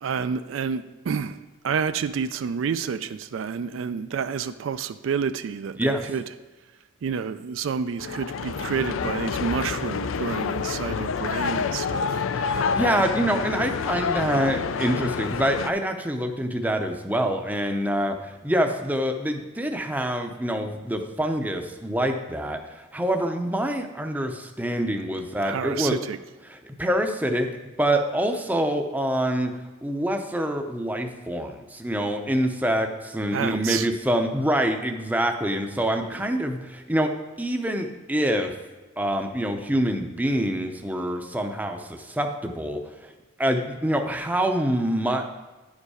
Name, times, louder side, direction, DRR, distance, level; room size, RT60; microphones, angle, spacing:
voice 1, 0.0-1.4 1.6-6.2 7.0-12.2 25.4-26.2 33.3-33.9 36.1-36.3, right 6 dB, 70° right, 11 dB, 0.4 m, -29 dB
sound 1, 8.0-15.7, left 5 dB, 75° left, 0.4 m, -28 dB
voice 2, 12.3-25.9 26.5-27.5 27.8-29.5 29.8-37.1 37.4-38.6 39.0-43.1 43.4-45.3, right 1 dB, 10° right, 5 dB, 0.6 m, -26 dB
10.5 x 5.3 x 4.9 m, 1.2 s
head